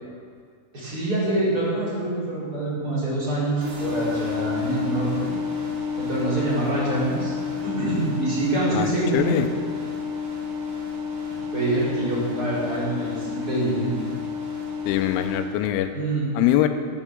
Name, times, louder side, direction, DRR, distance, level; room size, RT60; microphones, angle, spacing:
voice 1, 0.7-5.3 6.0-7.3 7.6-9.4 11.5-13.9 15.9-16.3, right 2 dB, 20° right, -8 dB, 4.2 m, -25 dB
sound 1, 3.6-15.4, left 5 dB, 60° right, 4.2 m, -30 dB
voice 2, 9.1-9.5 14.9-15.9 16.4-16.7, left 13 dB, 85° left, 7 dB, 3.1 m, -22 dB
13.0 x 8.1 x 7.3 m, 2.1 s
omnidirectional pair, 5.9 m